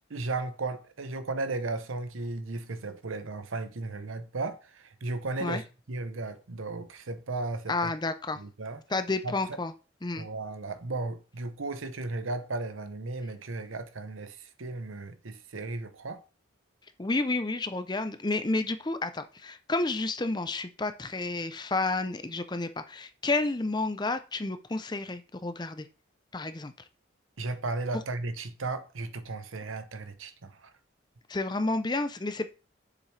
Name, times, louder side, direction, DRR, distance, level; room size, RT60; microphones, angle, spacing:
voice 1, 0.1-7.9 8.4-8.8 9.2-9.3 10.2-16.2 27.4-30.7, right 3 dB, 90° right, 0.9 m, -35 dB
voice 2, 7.7-8.4 8.9-9.7 10.0-10.3 17.0-25.9 26.3-26.7 27.9-28.0 31.3-32.5, left 2 dB, 20° left, 0.6 m, -30 dB
7.4 x 6.8 x 3.3 m
head